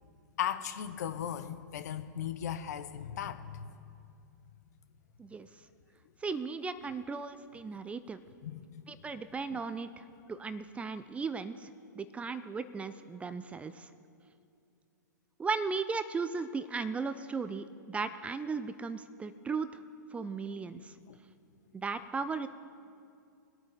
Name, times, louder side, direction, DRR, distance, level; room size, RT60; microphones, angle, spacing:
voice 1, 0.4-3.7 8.4-8.7 9.5-9.6 21.1-21.2, left 9 dB, 60° left, 11 dB, 0.8 m, -37 dB
voice 2, 6.2-8.2 8.9-11.7 11.9-13.9 15.4-19.8 20.1-21.0 21.7-22.5, right 4 dB, 10° right, 13 dB, 0.5 m, -36 dB
22.5 x 8.9 x 3.4 m, 2.5 s
figure-of-eight pair, 105°, 10 cm